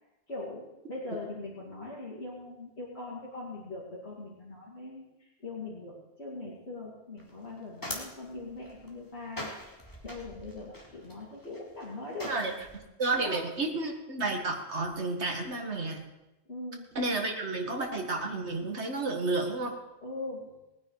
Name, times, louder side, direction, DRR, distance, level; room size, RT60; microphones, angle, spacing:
voice 1, 0.3-5.9 6.2-9.5 10.0-12.4 13.2-13.4 16.5-16.9 20.0-20.6, left 2 dB, 65° left, -8 dB, 2.9 m, -41 dB
sound 1, 7.2-12.8, left 1 dB, 20° left, 2.6 m, -44 dB
voice 2, 12.2-16.1 17.0-19.7, right 2 dB, 80° right, 2 dB, 2.1 m, -31 dB
19.5 x 9.6 x 4.8 m, 0.98 s
omnidirectional pair, 1.1 m